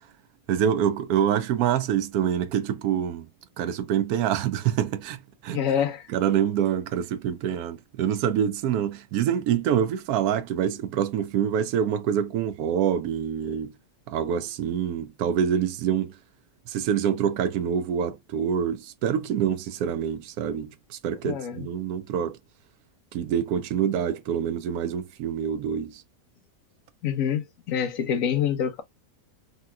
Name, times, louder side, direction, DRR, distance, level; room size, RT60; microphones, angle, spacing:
voice 1, 0.5-3.2 3.6-5.6 6.1-13.7 14.1-16.1 16.7-22.4 23.1-26.0, right 9 dB, 85° right, 1.1 m, -26 dB
voice 2, 5.5-6.1 21.2-21.7 27.0-28.8, left 8 dB, 70° left, 1.0 m, -26 dB
3.3 x 2.9 x 2.2 m
omnidirectional pair, 1.6 m